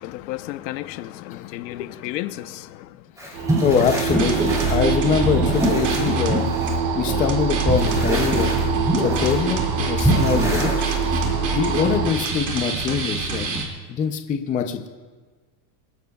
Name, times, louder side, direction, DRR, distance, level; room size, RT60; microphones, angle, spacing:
voice 1, 0.0-3.0, left 15 dB, 80° left, 0.9 m, -33 dB
sound 1, 3.2-7.3 7.6-9.3 10.0-11.4, equal, 5° right, 3.3 m, -25 dB
voice 2, 3.3-8.5 9.0-10.9 11.2-14.9, left 6 dB, 15° left, 0.5 m, -24 dB
sound 2, 3.3-12.1, right 4 dB, 80° right, 3.4 m, -24 dB
sound 3, 3.7-6.4 6.7-6.8 7.1-13.7, right 4 dB, 35° right, 2.4 m, -29 dB
27.0 x 10.5 x 2.3 m
supercardioid pair, 160°, 50 cm